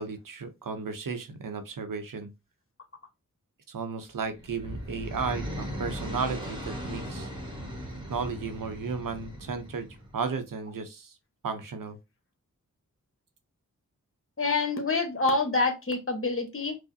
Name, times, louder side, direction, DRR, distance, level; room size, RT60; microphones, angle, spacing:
voice 1, 0.0-2.3 3.7-7.3 8.1-9.9 10.1-11.1 11.4-12.0, right 5 dB, 75° right, 0.7 m, -34 dB
sound 1, 4.1-10.2, equal, 15° right, 1.3 m, -38 dB
voice 2, 14.4-16.8, left 3 dB, 40° left, 1.0 m, -27 dB
4.8 x 2.1 x 2.6 m
wide cardioid pair, 65°, 33 cm